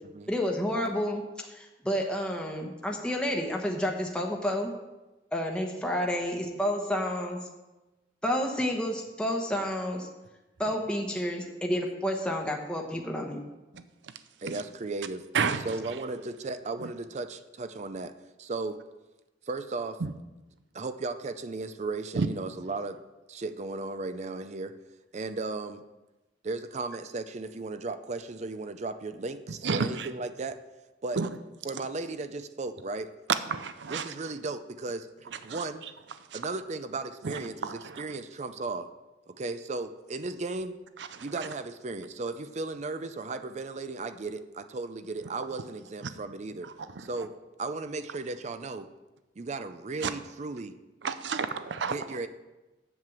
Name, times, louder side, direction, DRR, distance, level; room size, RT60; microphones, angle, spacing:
voice 1, 0.3-1.2 1.5-4.7 5.3-7.4 8.2-10.1 10.6-13.4, equal, 5° left, 0 dB, 1.0 m, -30 dB
voice 2, 14.4-15.2 15.6-18.1 18.4-18.8 19.4-20.0 20.7-23.0 23.3-24.7 25.1-25.8 26.4-30.6 31.0-31.2 31.6-33.1 33.9-35.8 36.3-38.9 39.3-40.8 41.2-46.7 47.0-48.9 49.4-50.8 51.8-52.3, right 3 dB, 40° right, 10 dB, 0.5 m, -35 dB
voice 3, 29.6-30.1 31.2-31.3 33.3-34.1 35.5-35.6 36.3-36.4 37.2-38.0 41.1-41.2 50.0-50.1 51.0-52.0, right 5 dB, 85° right, 11 dB, 0.6 m, -30 dB
7.8 x 7.6 x 7.3 m, 1.1 s
head